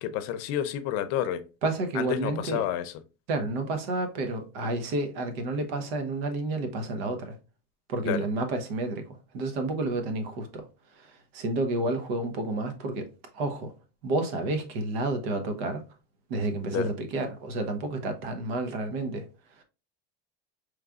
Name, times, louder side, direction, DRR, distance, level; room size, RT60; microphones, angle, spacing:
voice 1, 0.0-1.4 1.9-2.9 8.1-8.2 16.7-16.9, left 11 dB, 60° left, 0.6 m, -30 dB
voice 2, 1.6-2.6 3.3-7.4 7.9-10.7 10.9-13.1 13.3-13.7 14.0-15.8 16.3-19.3 19.6-19.7, right 2 dB, 80° right, 1.1 m, -30 dB
5.0 x 3.2 x 2.4 m
cardioid pair, 145°, 29 cm